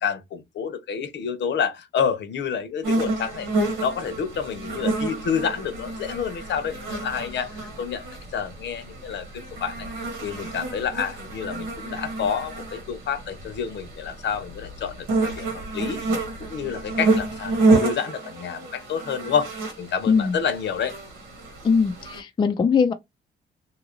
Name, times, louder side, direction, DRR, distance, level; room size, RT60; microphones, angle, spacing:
voice 1, 0.0-8.0 8.3-15.5 15.7-16.0 16.4-21.0, left 7 dB, 65° left, 0.7 m, -29 dB
sound 1, 2.8-22.2, right 2 dB, 85° right, 1.4 m, -29 dB
voice 2, 20.1-20.4 21.6-22.9, left 5 dB, 25° left, 0.4 m, -20 dB
2.8 x 2.5 x 2.9 m
cardioid pair, 90°, 20 cm